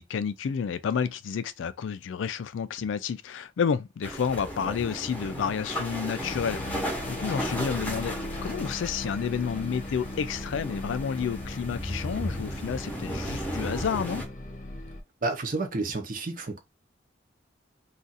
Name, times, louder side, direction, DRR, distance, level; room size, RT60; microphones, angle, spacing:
voice 1, 0.0-8.2 8.4-14.2, left 6 dB, 90° left, 0.3 m, -30 dB
sound 1, 4.0-14.2, equal, 10° left, 0.8 m, -35 dB
sound 2, 6.2-15.0, left 1 dB, 40° left, 0.7 m, -38 dB
voice 2, 15.2-16.6, right 3 dB, 45° right, 0.7 m, -30 dB
2.4 x 2.4 x 3.9 m
head